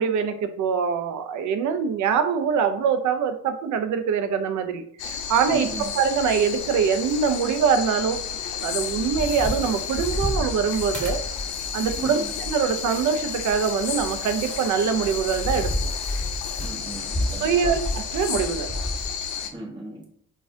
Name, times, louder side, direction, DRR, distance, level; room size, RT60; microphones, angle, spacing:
voice 1, 0.0-8.2 8.6-11.2 11.7-15.7 17.4-18.7, right 6 dB, 70° right, 8 dB, 0.5 m, -24 dB
sound 1, 5.0-19.5, left 7 dB, 80° left, 0.5 m, -32 dB
voice 2, 5.5-5.9 12.0-12.3 16.6-17.7 19.5-20.0, right 2 dB, 15° right, -3 dB, 0.9 m, -36 dB
sound 2, 8.8-19.0, left 1 dB, 5° left, 1.5 m, -32 dB
4.2 x 2.4 x 2.5 m, 0.66 s
cardioid pair, 90°, 30 cm